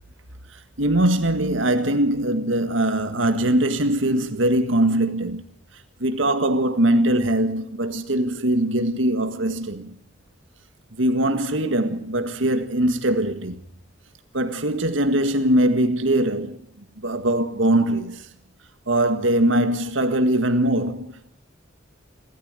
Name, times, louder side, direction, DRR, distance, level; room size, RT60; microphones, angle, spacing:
voice 1, 0.5-5.4 6.0-10.0 11.0-13.6 14.3-16.6 17.0-18.3 18.9-21.1, right 1 dB, 85° right, 1.8 m, -21 dB
26.5 x 13.5 x 9.0 m
head